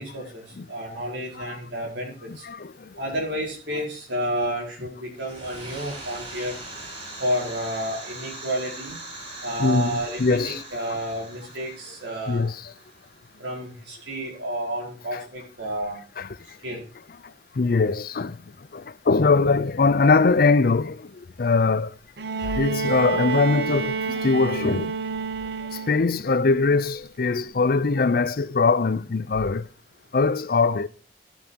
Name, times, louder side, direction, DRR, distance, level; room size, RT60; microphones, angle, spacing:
voice 1, 0.0-2.5 3.0-6.5 7.2-9.0 9.4-12.5 13.4-16.0 16.6-16.9, equal, 90° right, 4.6 m, -31 dB
voice 2, 2.3-3.0 9.6-10.6 12.3-12.7 15.1-15.2 16.2-16.4 17.2-21.9 22.4-24.9 25.7-29.7 30.1-30.9, left 4 dB, 55° left, 0.5 m, -22 dB
sound 1, 5.1-13.7, right 2 dB, 35° right, 5.8 m, -41 dB
Bowed string instrument, 22.2-26.2 27.4-27.5, right 5 dB, 65° right, 0.7 m, -28 dB
13.0 x 8.8 x 2.9 m
head